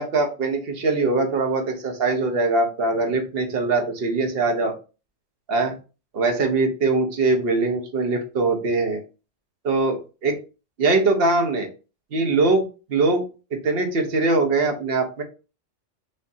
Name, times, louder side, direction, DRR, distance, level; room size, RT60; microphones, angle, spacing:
voice 1, 0.0-4.7 5.5-5.8 6.1-9.0 9.6-10.4 10.8-11.7 12.1-13.2 13.5-15.2, right 3 dB, 55° right, 4 dB, 1.0 m, -22 dB
5.3 x 2.6 x 2.6 m, 0.32 s
omnidirectional pair, 1.3 m